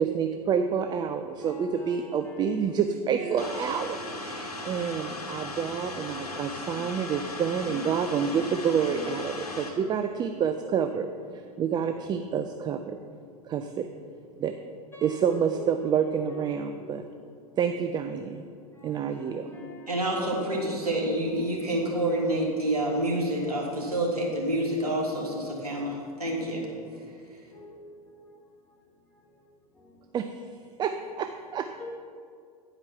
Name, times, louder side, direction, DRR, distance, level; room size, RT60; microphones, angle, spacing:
voice 1, 0.0-11.1 11.3-13.0 13.5-13.9 14.4-14.5 15.0-17.0 17.6-18.4 18.8-19.5 30.1-30.3 30.8-31.7, right 7 dB, 25° right, 7 dB, 0.4 m, -28 dB
voice 2, 1.2-4.5 7.6-8.4 8.8-9.1 12.0-12.1 14.9-17.0 18.2-18.4 18.7-20.8 21.7-21.8 23.0-23.1 23.4-23.7 25.1-25.9 27.5-28.3 31.8-31.9, equal, 10° left, -4 dB, 2.3 m, -45 dB
sound 1, 3.4-9.7, left 2 dB, 80° left, 1.2 m, -37 dB
voice 3, 19.9-26.6, right 1 dB, 90° right, -2 dB, 1.8 m, -28 dB
10.0 x 4.9 x 5.6 m, 2.2 s
figure-of-eight pair, 85°, 19 cm